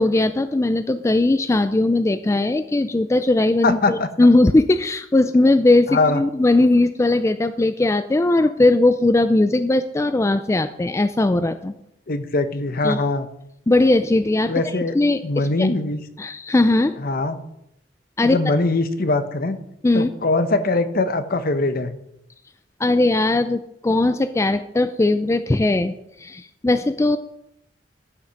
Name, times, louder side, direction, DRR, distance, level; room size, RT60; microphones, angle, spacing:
voice 1, 0.0-11.7 12.8-13.0 13.7-14.5 14.9-15.7 16.2-17.0 18.2-18.4 19.8-20.1 22.8-27.2, left 2 dB, 15° left, 10 dB, 0.3 m, -19 dB
voice 2, 3.6-4.1 5.9-6.2 12.1-13.3 14.5-15.0 15.2-16.0 17.0-17.4 18.2-19.6 19.9-21.9, left 2 dB, 55° left, 10 dB, 0.9 m, -22 dB
13.0 x 5.9 x 5.2 m, 0.80 s
head